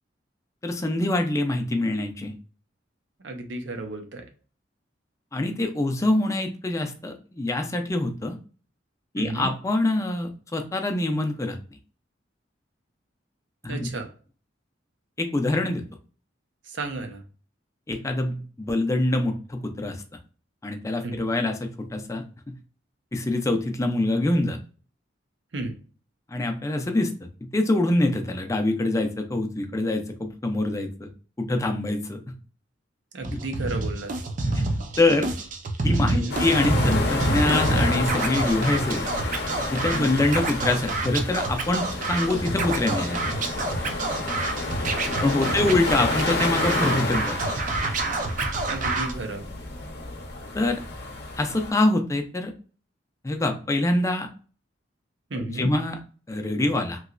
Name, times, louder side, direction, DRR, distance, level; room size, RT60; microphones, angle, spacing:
voice 1, 0.6-2.3 5.3-8.4 9.1-11.6 13.6-13.9 15.2-15.8 17.9-20.0 20.6-22.2 23.1-24.6 26.3-27.1 27.4-31.1 31.4-32.2 35.0-35.3 35.8-39.0 39.7-43.3 45.2-47.4 50.5-50.8 51.4-52.5 53.2-54.3 55.4-56.0 56.3-57.0, left 2 dB, 15° left, 4 dB, 0.4 m, -25 dB
voice 2, 3.2-4.2 9.2-9.5 13.7-14.1 16.7-17.2 21.0-21.2 25.5-25.7 33.1-34.1 36.1-36.3 39.9-40.2 45.4-45.7 48.7-49.4 55.3-55.7, right 2 dB, 80° right, 5 dB, 0.7 m, -33 dB
Scratching (performance technique), 33.2-49.1, right 2 dB, 45° right, 0.5 m, -28 dB
sound 1, 36.3-51.7, left 2 dB, 60° left, 0.7 m, -30 dB
3.1 x 2.8 x 2.5 m, 0.39 s
head